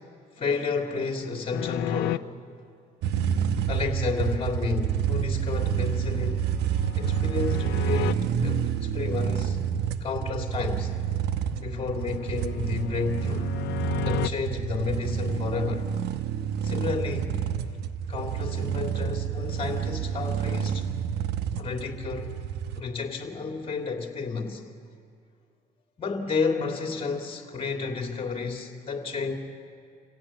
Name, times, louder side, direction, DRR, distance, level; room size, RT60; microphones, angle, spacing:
voice 1, 0.4-2.3 3.7-6.5 7.0-9.6 10.0-10.9 11.6-13.5 14.0-15.9 16.6-17.4 18.1-20.9 21.6-22.3 22.8-24.6 26.0-29.3, left 4 dB, 35° left, 3.0 m, -31 dB
sound 1, 1.5-2.2 5.6-8.1 11.2-14.3, left 16 dB, 80° left, 0.5 m, -34 dB
sound 2, 3.0-22.8, right 8 dB, 80° right, 1.0 m, -28 dB
27.0 x 16.5 x 8.8 m
cardioid pair, 110°, 17 cm